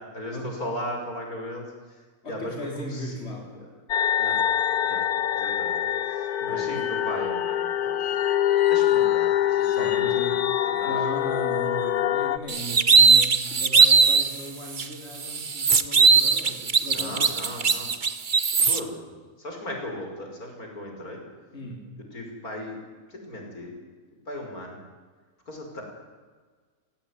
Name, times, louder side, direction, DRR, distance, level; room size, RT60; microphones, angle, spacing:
voice 1, 0.1-2.0 2.2-3.6 4.2-4.4 4.8-8.0 8.7-10.3 10.6-10.9 16.9-18.0 18.6-19.1 19.4-21.2 22.1-22.8 23.1-23.7 24.3-24.8 25.5-25.8, left 1 dB, 75° left, 2 dB, 6.3 m, -37 dB
voice 2, 2.2-3.5 6.4-6.8 9.7-10.5 10.8-17.4 21.5-22.0, equal, 45° left, 0 dB, 4.1 m, -37 dB
sound 1, 3.9-12.4, left 11 dB, 90° left, 1.6 m, -24 dB
sound 2, 12.5-14.3 14.8-14.9 15.2-18.8, right 5 dB, 35° right, 1.1 m, -19 dB
29.0 x 17.5 x 9.9 m, 1.5 s
omnidirectional pair, 1.6 m